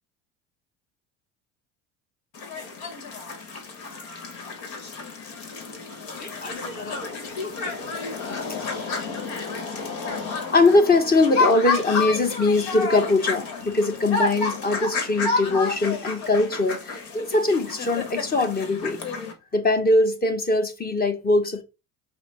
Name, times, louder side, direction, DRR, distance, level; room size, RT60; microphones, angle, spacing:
sound 1, 2.3-19.3, left 3 dB, 70° left, 1.3 m, -30 dB
voice 1, 6.1-7.9 8.6-8.7 10.5-19.0 19.5-21.6, left 2 dB, 25° left, 0.9 m, -22 dB
5.6 x 2.1 x 4.2 m
hypercardioid pair, 80°, 38 cm